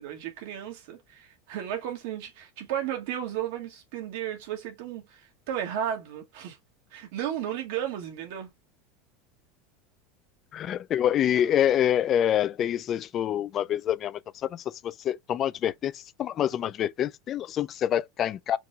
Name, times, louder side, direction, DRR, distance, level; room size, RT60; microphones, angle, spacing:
voice 1, 0.0-5.0 5.5-6.6 6.9-8.5, right 10 dB, 70° right, 1.6 m, -34 dB
voice 2, 10.5-18.6, left 10 dB, 35° left, 0.4 m, -26 dB
4.7 x 2.2 x 3.9 m
supercardioid pair, 130°, 0 cm